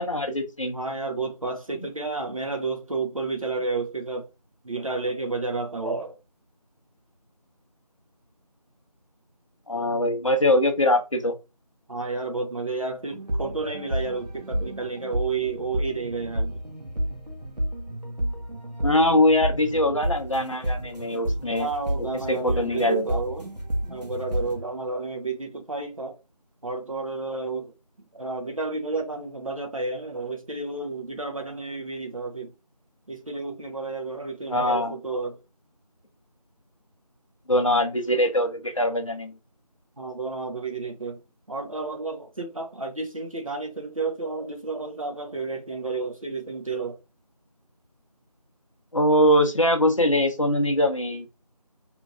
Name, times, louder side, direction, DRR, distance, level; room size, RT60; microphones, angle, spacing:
voice 1, 0.0-0.8 9.7-11.3 18.8-21.7 22.3-23.2 34.5-35.0 37.5-39.3 48.9-51.3, left 1 dB, 50° left, 0.6 m, -22 dB
voice 2, 0.7-4.3 4.6-6.2 11.9-16.6 21.6-23.5 23.9-26.2 26.6-27.7 28.1-32.5 33.1-35.4 40.0-41.2 41.5-47.0, right 3 dB, 55° right, 0.6 m, -31 dB
sound 1, 13.1-24.6, right 1 dB, 85° right, 0.9 m, -31 dB
2.9 x 2.6 x 2.4 m
figure-of-eight pair, 180°, 21 cm